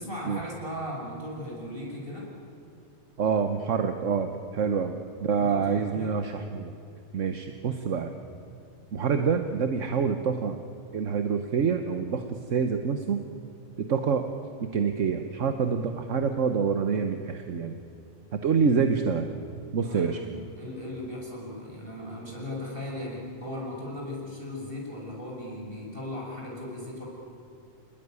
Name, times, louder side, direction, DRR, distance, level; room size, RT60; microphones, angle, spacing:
voice 1, 0.0-2.3 4.8-4.9 5.3-6.2 19.8-27.1, left 1 dB, 45° right, -3 dB, 7.0 m, -37 dB
voice 2, 3.2-6.7 7.1-8.2 8.9-10.6 10.9-13.2 13.8-14.3 14.6-17.8 18.3-19.3 19.7-20.2, right 6 dB, 75° right, 7 dB, 1.4 m, -26 dB
28.0 x 20.0 x 9.6 m, 2.4 s
omnidirectional pair, 1.3 m